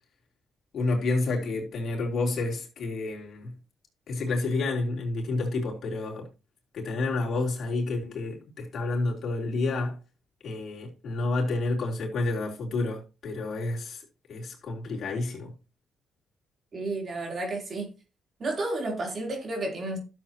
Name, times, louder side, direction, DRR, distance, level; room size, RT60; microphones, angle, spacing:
voice 1, 0.7-3.5 4.1-6.3 6.7-10.0 10.4-14.0 14.3-15.5, left 3 dB, 55° left, 3.5 m, -29 dB
voice 2, 16.7-17.9 18.4-20.0, right 2 dB, 45° right, 3.5 m, -31 dB
12.5 x 7.5 x 2.9 m
cardioid pair, 90°, 0 cm